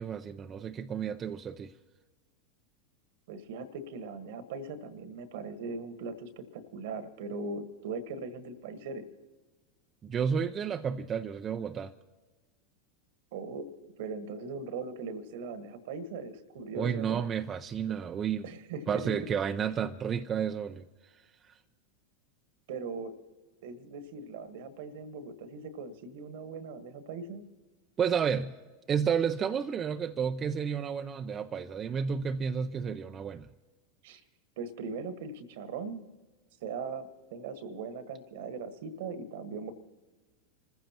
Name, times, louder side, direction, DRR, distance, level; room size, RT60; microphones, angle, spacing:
voice 1, 0.0-1.7 10.0-11.9 16.7-18.5 18.9-21.6 28.0-28.6 28.9-33.5, right 7 dB, 30° right, 0.5 m, -31 dB
voice 2, 3.3-9.0 13.3-17.2 18.4-19.1 22.7-23.1 23.6-27.4 34.0-34.2 34.6-36.0 36.6-39.7, right 4 dB, 65° right, 1.4 m, -40 dB
27.0 x 15.0 x 2.9 m
hypercardioid pair, 90°, 0 cm